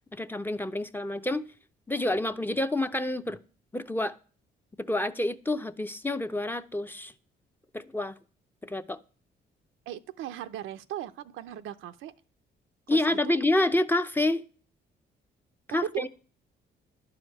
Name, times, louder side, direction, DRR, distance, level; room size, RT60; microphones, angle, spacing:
voice 1, 0.1-1.4 1.9-3.4 3.7-4.2 4.8-7.1 7.7-8.2 8.6-9.0 12.9-14.4 15.7-16.1, left 1 dB, 10° left, 0.6 m, -28 dB
voice 2, 9.9-12.1 12.9-13.0 13.2-13.3 15.9-16.1, right 11 dB, 85° right, 0.7 m, -38 dB
11.5 x 5.0 x 8.4 m
cardioid pair, 90°, 20 cm